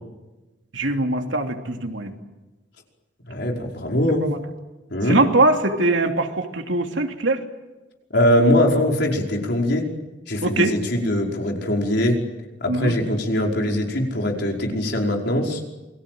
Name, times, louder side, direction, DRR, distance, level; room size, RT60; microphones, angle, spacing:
voice 1, 0.7-2.1 4.2-4.4 5.0-7.4 10.4-10.8 12.7-12.9, right 2 dB, 80° right, 4 dB, 3.0 m, -22 dB
voice 2, 3.3-4.3 4.9-5.2 8.1-9.9 10.3-12.1 12.6-15.6, left 1 dB, 60° left, 1 dB, 5.3 m, -21 dB
28.5 x 22.5 x 7.9 m, 1.1 s
head